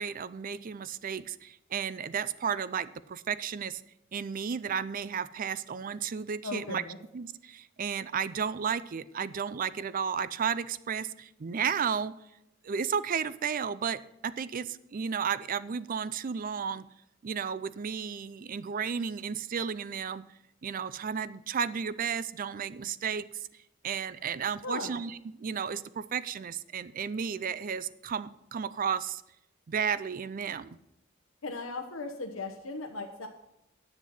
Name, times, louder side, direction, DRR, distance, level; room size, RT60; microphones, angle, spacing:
voice 1, 0.0-3.8 4.1-6.8 7.1-12.2 12.6-16.8 17.2-20.2 20.6-23.5 23.8-29.2 29.7-30.8, right 7 dB, 45° right, 16 dB, 0.4 m, -33 dB
voice 2, 6.4-7.0 24.6-25.0 31.4-33.3, left 3 dB, 90° left, 4 dB, 1.0 m, -37 dB
10.0 x 7.6 x 5.5 m, 0.86 s
head